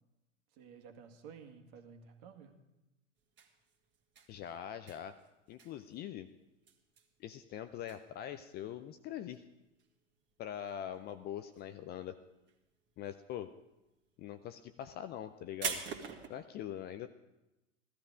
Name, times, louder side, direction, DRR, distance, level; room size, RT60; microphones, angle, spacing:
voice 1, 0.5-2.5, right 6 dB, 45° right, 5 dB, 2.0 m, -53 dB
sound 1, 3.2-11.1 11.4-12.1 12.4-16.3, right 6 dB, 30° right, 2.0 m, -45 dB
voice 2, 4.3-5.2 5.5-6.3 7.2-9.4 10.4-12.2 13.0-13.5 14.2-15.8 16.3-17.1, left 10 dB, 25° left, 10 dB, 0.5 m, -43 dB
16.5 x 13.0 x 5.0 m, 0.97 s
hypercardioid pair, 100°, 38 cm